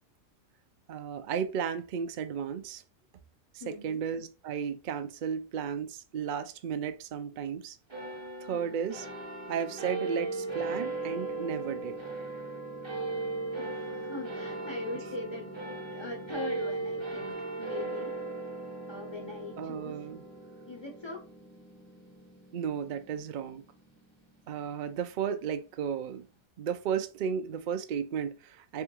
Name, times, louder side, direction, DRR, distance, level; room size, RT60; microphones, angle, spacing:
voice 1, 0.9-2.8 3.5-7.8 8.4-9.1 9.5-12.0 19.6-20.2 22.5-23.6 24.5-26.2 26.6-28.8, right 7 dB, 70° right, 0.4 m, -34 dB
voice 2, 3.6-4.0 8.5-8.7 13.6-15.5 15.9-18.1 18.9-20.1 20.7-21.2, left 2 dB, 25° left, 0.6 m, -41 dB
sound 1, 7.9-24.6, right 3 dB, 25° right, 0.9 m, -38 dB
3.5 x 3.5 x 3.0 m
omnidirectional pair, 1.4 m